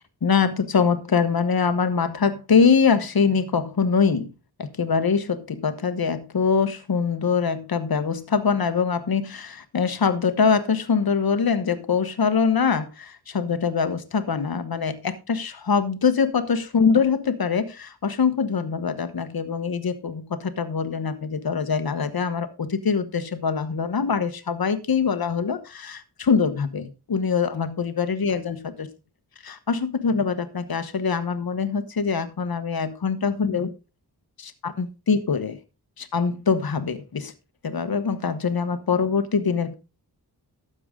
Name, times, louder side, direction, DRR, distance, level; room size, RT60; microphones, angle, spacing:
voice 1, 0.2-4.3 4.6-28.9 29.4-33.7 34.4-35.6 36.0-37.3 37.6-39.7, left 5 dB, 65° left, 10 dB, 1.2 m, -23 dB
12.5 x 7.9 x 3.7 m, 0.30 s
wide cardioid pair, 90°, 40 cm